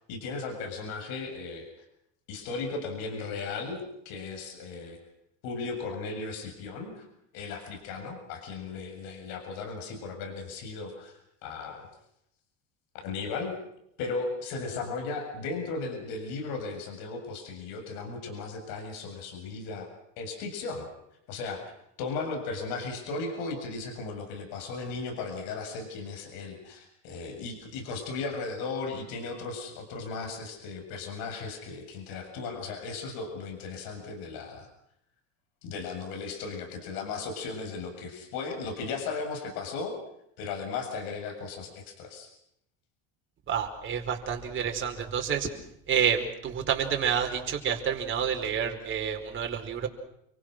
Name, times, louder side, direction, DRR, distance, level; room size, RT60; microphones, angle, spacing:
voice 1, 0.1-1.7 2.3-5.0 5.4-7.1 7.3-11.9 12.9-13.5 14.0-19.9 20.2-20.9 21.3-21.7 22.0-34.7 35.6-40.0 40.4-42.3, left 4 dB, 65° left, 4 dB, 7.4 m, -36 dB
voice 2, 43.5-45.5 45.9-49.9, right 7 dB, 30° right, 3 dB, 4.9 m, -29 dB
29.5 x 23.5 x 6.4 m, 0.76 s
cardioid pair, 145°, 38 cm